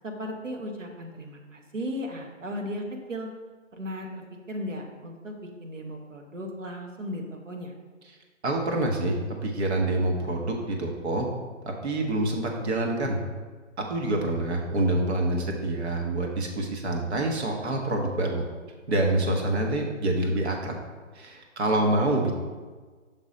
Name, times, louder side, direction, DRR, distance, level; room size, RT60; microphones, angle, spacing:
voice 1, 0.0-3.3 3.7-7.7, equal, 85° right, 2 dB, 1.3 m, -36 dB
voice 2, 8.4-11.3 11.6-13.2 13.8-18.4 18.9-20.8 21.1-22.4, right 1 dB, 60° right, 1 dB, 1.4 m, -26 dB
6.0 x 4.2 x 5.1 m, 1.4 s
figure-of-eight pair, 140°, 37 cm